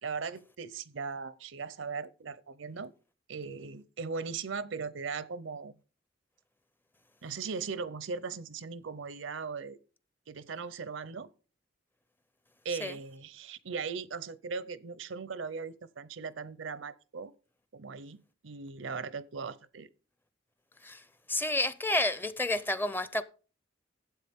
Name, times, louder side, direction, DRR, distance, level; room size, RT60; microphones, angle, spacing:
voice 1, 0.0-2.9 3.3-5.7 7.2-9.8 10.3-11.3 12.6-17.3 17.7-19.9, right 5 dB, 80° right, 0.7 m, -38 dB
voice 2, 21.3-23.2, left 1 dB, 10° left, 0.5 m, -30 dB
12.5 x 8.2 x 3.6 m
head